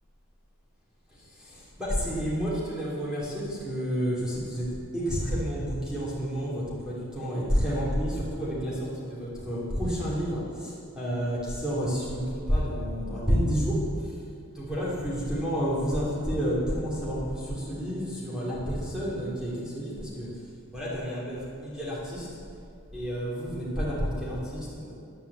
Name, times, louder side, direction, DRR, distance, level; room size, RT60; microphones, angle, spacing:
voice 1, 1.1-4.7 4.9-14.2 14.5-20.4 20.7-22.3 22.9-24.9, equal, 5° right, -8 dB, 3.0 m, -30 dB
11.0 x 5.6 x 8.3 m, 2.5 s
head